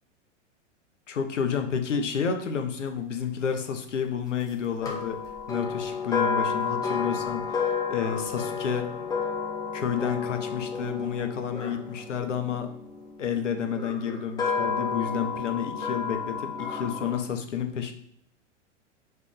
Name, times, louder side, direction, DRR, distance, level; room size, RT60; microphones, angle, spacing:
voice 1, 1.1-5.2 5.5-8.9 9.7-12.7 13.2-17.9, left 7 dB, 75° left, 6 dB, 0.8 m, -30 dB
sound 1, 4.8-13.0 13.7-17.2, left 5 dB, 10° left, 0.6 m, -31 dB
3.6 x 3.3 x 3.7 m, 0.68 s
figure-of-eight pair, 95°, 37 cm